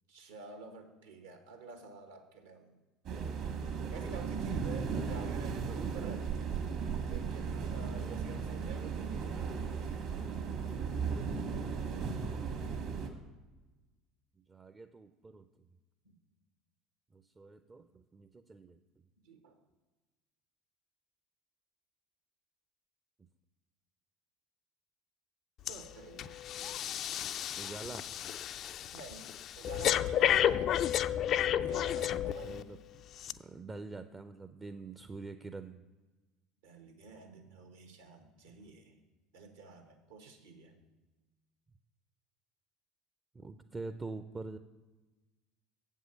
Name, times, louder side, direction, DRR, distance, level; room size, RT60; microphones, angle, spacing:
voice 1, 0.1-2.8 3.4-6.6 7.0-9.6 16.0-16.2 19.2-19.6 25.7-26.4 28.9-31.0 31.6-32.7 36.6-39.0 39.3-40.8, right 4 dB, 70° right, 5 dB, 1.2 m, -49 dB
sound 1, 3.1-13.1, right 6 dB, 50° right, 1.5 m, -36 dB
voice 2, 14.5-15.5 17.1-18.8 27.6-28.1 32.4-32.8 33.3-35.8 43.3-44.6, right 3 dB, 20° right, 8 dB, 0.5 m, -45 dB
Breathing, 25.7-25.9 26.2-32.6 33.2-33.3, left 11 dB, 45° left, 0.3 m, -32 dB
7.8 x 5.5 x 7.7 m, 1.2 s
figure-of-eight pair, 65°, 0 cm